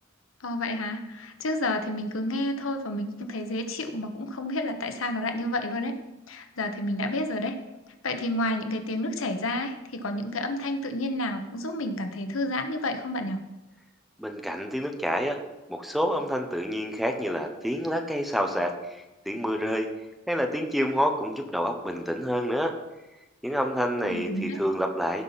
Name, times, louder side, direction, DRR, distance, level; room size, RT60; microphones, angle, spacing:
voice 1, 0.4-5.9 6.3-7.6 8.0-13.4 24.0-24.6, left 1 dB, 85° left, 6 dB, 1.1 m, -30 dB
voice 2, 14.2-15.4 15.7-19.9 20.3-22.7 23.4-25.2, equal, ahead, 3 dB, 0.9 m, -28 dB
17.0 x 5.8 x 4.1 m, 1.0 s
head